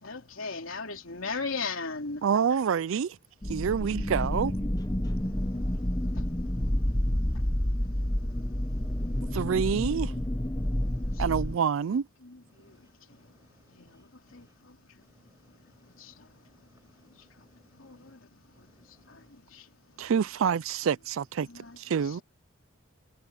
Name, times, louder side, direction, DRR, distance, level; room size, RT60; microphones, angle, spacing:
voice 1, 0.0-2.2 11.2-11.3 12.2-12.7 13.8-14.0 14.3-14.7 16.0-16.1 17.8-18.2 19.1-19.2 19.5-19.6 21.4-21.8 22.0-22.2, left 4 dB, 75° left, 3.1 m, -37 dB
voice 2, 2.2-3.2 3.5-4.5 9.3-10.1 11.2-12.1 20.0-21.5 21.8-22.2, right 7 dB, 75° right, 0.4 m, -27 dB
sound 1, 3.4-11.6, left 1 dB, 15° left, 1.0 m, -29 dB
voice 3, 5.0-9.4 10.9-11.2 12.5-14.5 15.0-18.1 18.5-19.3, equal, 15° right, 6.4 m, -65 dB
head